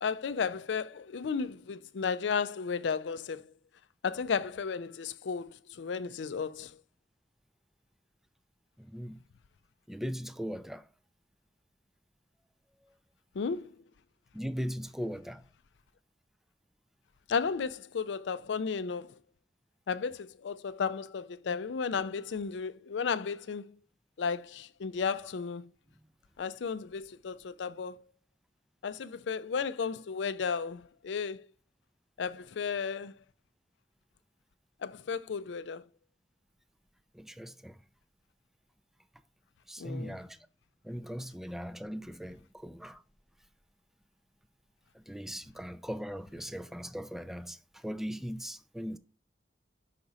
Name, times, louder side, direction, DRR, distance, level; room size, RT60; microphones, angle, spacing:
voice 1, 0.0-3.5 4.0-6.8 13.3-13.8 17.3-19.2 19.9-23.7 24.2-25.7 26.4-28.0 28.8-31.5 32.2-33.1 34.8-35.8 39.8-40.2, left 5 dB, 80° left, 0.4 m, -34 dB
voice 2, 8.8-9.2 9.9-10.8 14.3-15.4 37.1-37.8 39.7-40.4 40.8-43.0 44.9-49.0, equal, ahead, 0.4 m, -39 dB
5.8 x 4.0 x 5.0 m
head